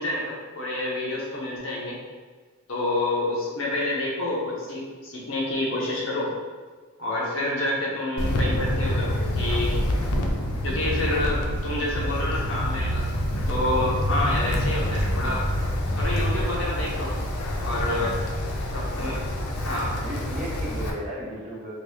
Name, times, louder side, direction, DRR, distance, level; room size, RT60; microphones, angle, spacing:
voice 1, 0.0-2.0 2.7-6.3 7.0-9.7 10.6-13.0 13.5-15.4 16.0-17.1 17.6-18.1 18.7-19.2 19.6-19.9, left 1 dB, 65° left, -4 dB, 0.8 m, -28 dB
Wind, 8.2-20.9, left 1 dB, 90° left, 0.5 m, -27 dB
sound 1, 11.4-16.5, right 1 dB, 80° right, 0.6 m, -33 dB
voice 2, 17.9-18.2 19.0-19.2 20.0-21.7, equal, 40° right, -5 dB, 0.8 m, -35 dB
3.6 x 2.3 x 3.1 m, 1.4 s
head